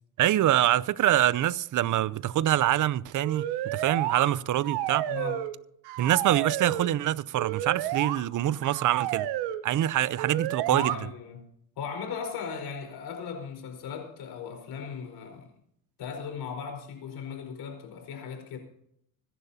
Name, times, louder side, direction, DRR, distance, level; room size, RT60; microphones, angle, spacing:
voice 1, 0.2-5.0 6.0-9.3 9.6-10.9, right 13 dB, 50° right, 0.6 m, -25 dB
sound 1, 3.2-4.3 4.6-5.6 5.8-6.9 7.4-8.2 8.6-9.6 10.2-11.0, right 13 dB, 90° right, 1.0 m, -31 dB
voice 2, 5.1-5.4 10.7-11.5 11.8-15.5 16.0-18.6, left 6 dB, 75° left, 4.6 m, -37 dB
25.0 x 11.0 x 2.8 m
cardioid pair, 95°, 39 cm